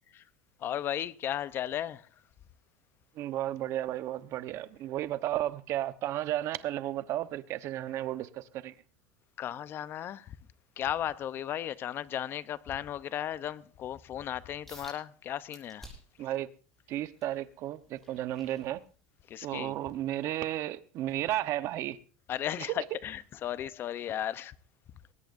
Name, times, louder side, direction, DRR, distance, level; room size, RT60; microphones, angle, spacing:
voice 1, 0.6-2.1 9.4-10.3 10.8-15.9 19.3-19.7 22.3-24.5, left 11 dB, 35° left, 0.8 m, -35 dB
voice 2, 3.2-8.7 16.2-16.5 16.9-18.8 19.4-22.0 22.6-22.8, right 13 dB, 45° right, 1.0 m, -33 dB
sound 1, 14.7-15.0 15.5-16.2 16.7-19.3 19.7-20.0 20.5-20.6, equal, 5° left, 7.1 m, -52 dB
21.0 x 18.5 x 2.6 m
supercardioid pair, 145°, 7 cm